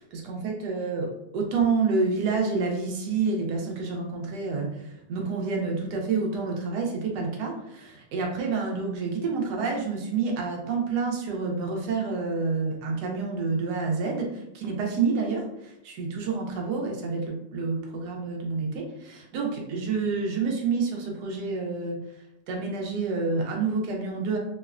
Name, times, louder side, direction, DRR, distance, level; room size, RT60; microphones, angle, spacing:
voice 1, 0.0-22.0 22.5-24.4, right 4 dB, 90° right, 0 dB, 1.2 m, -28 dB
3.0 x 2.1 x 2.3 m, 0.85 s
omnidirectional pair, 1.7 m